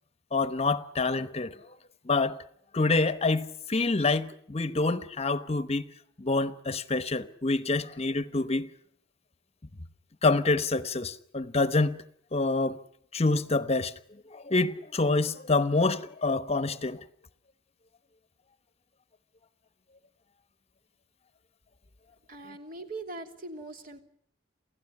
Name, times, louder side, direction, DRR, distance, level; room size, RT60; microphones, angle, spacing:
voice 1, 0.3-1.5 2.1-2.4 2.7-5.8 6.2-8.7 10.2-12.0 12.3-12.8 13.1-13.9 14.3-17.0, left 3 dB, 35° left, 1.0 m, -27 dB
voice 2, 22.3-24.0, right 2 dB, 50° right, 3.0 m, -41 dB
29.0 x 16.5 x 9.8 m
head